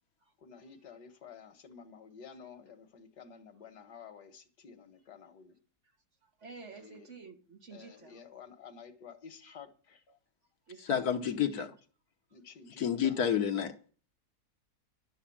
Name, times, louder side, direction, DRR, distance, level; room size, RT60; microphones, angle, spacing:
voice 1, 0.4-5.6 6.7-7.1 7.7-10.0 11.2-11.7 12.3-13.2, left 6 dB, 90° left, 2.0 m, -52 dB
voice 2, 6.2-8.2 10.7-11.4 12.9-13.2, right 4 dB, 45° right, 1.9 m, -50 dB
voice 3, 10.9-11.7 12.8-13.8, left 8 dB, 70° left, 1.6 m, -29 dB
12.0 x 7.0 x 8.6 m
omnidirectional pair, 1.7 m